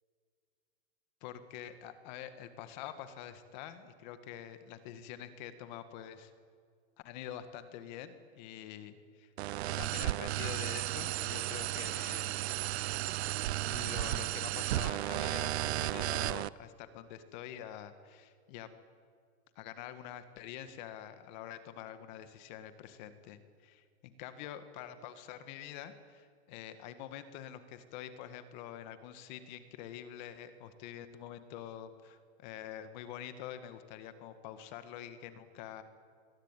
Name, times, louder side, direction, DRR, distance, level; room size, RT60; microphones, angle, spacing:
voice 1, 1.2-6.3 7.0-9.3 9.8-12.4 13.7-18.7 19.6-35.8, left 10 dB, 40° left, 10 dB, 1.8 m, -46 dB
sound 1, 9.4-16.5, right 15 dB, 65° right, 0.7 m, -34 dB
26.0 x 22.0 x 9.1 m, 2.1 s
supercardioid pair, 170°, 35 cm